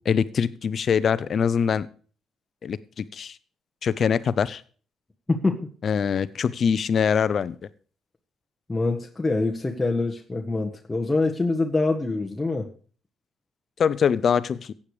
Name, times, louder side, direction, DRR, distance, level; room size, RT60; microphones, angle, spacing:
voice 1, 0.1-1.9 2.6-3.3 3.8-4.6 5.8-7.5 13.8-14.7, left 7 dB, 55° left, 17 dB, 0.8 m, -23 dB
voice 2, 5.3-5.7 8.7-12.7, left 3 dB, 15° left, 0 dB, 1.5 m, -25 dB
14.5 x 8.8 x 5.0 m, 0.42 s
cardioid pair, 90°, 0 cm